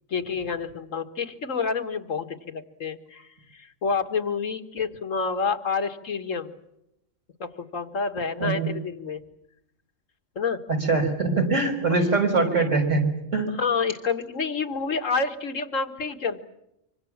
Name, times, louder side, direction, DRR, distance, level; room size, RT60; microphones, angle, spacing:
voice 1, 0.1-3.3 3.5-6.5 7.4-9.2 10.4-10.6 11.9-12.0 13.6-16.4, left 5 dB, 85° left, 8 dB, 2.0 m, -28 dB
voice 2, 8.4-8.7 10.9-13.0 13.3-13.5, right 3 dB, 75° right, 4 dB, 5.5 m, -22 dB
25.5 x 25.5 x 7.3 m, 0.84 s
omnidirectional pair, 1.3 m